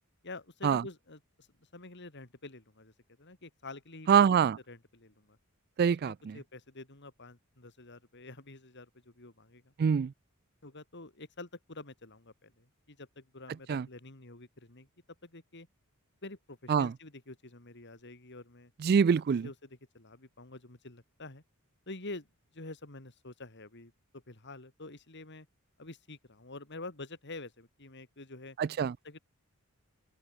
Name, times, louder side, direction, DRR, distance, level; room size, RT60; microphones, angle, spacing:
voice 1, 0.2-1.5 1.7-2.9 3.2-5.4 5.9-9.7 10.6-14.9 15.2-15.7 16.2-18.7 19.3-21.4 21.9-22.3 22.5-25.5 25.8-28.6 29.0-29.2, left 2 dB, 55° left, 2.9 m, -48 dB
voice 2, 4.1-4.6 5.8-6.1 9.8-10.1 13.7-13.8 16.7-16.9 18.8-19.5 28.6-28.9, right 7 dB, 45° right, 0.3 m, -24 dB
open air
head